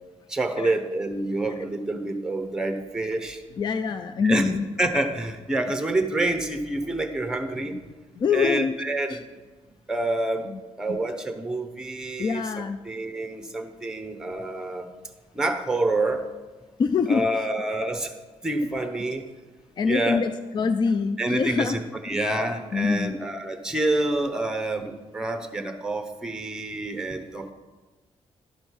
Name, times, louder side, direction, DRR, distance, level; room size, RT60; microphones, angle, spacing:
voice 1, 0.3-3.4 4.2-7.7 8.3-9.2 9.9-10.5 10.8-12.5 12.8-14.9 15.3-16.3 17.1-18.1 18.4-19.3 19.8-20.2 21.2-27.5, right 2 dB, 5° right, 6 dB, 0.8 m, -27 dB
voice 2, 3.6-4.7 8.2-8.8 9.1-9.2 10.5-10.6 10.9-11.0 12.2-12.8 16.8-17.3 19.8-21.8 22.7-23.1, left 5 dB, 40° left, 10 dB, 0.3 m, -25 dB
12.0 x 5.4 x 4.6 m, 1.3 s
wide cardioid pair, 135°, 12 cm